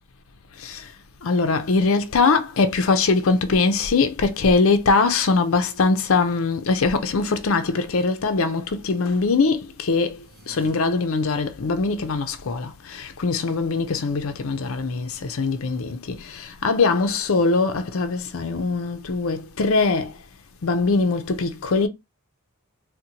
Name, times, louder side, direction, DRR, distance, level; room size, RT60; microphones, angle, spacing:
voice 1, 0.6-0.9 1.2-20.1 20.6-21.9, left 4 dB, 65° left, 0.5 m, -22 dB
sound 1, 10.1-10.7, equal, 45° right, 0.7 m, -47 dB
4.0 x 2.2 x 2.8 m
head